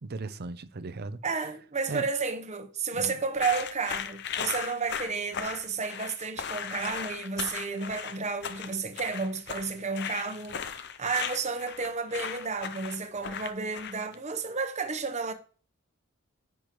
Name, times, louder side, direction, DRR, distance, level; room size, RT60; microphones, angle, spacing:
voice 1, 0.0-1.2 1.9-2.1 3.0-3.2, right 3 dB, 50° right, 0.6 m, -37 dB
voice 2, 1.2-15.3, right 4 dB, 35° right, 1.0 m, -32 dB
sound 1, 3.4-14.1, left 7 dB, 55° left, 0.7 m, -37 dB
10.0 x 6.2 x 3.1 m
head